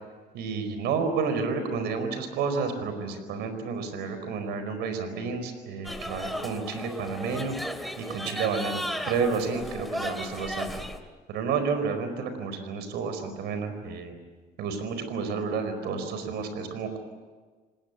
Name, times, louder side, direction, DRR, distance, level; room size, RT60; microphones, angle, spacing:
voice 1, 0.3-7.5 8.0-10.8 11.3-14.1 14.6-17.0, right 5 dB, 80° right, 8 dB, 4.7 m, -30 dB
sound 1, 5.8-11.0, equal, ahead, 2.6 m, -35 dB
27.5 x 19.5 x 8.3 m, 1.4 s
cardioid pair, 110°, 17 cm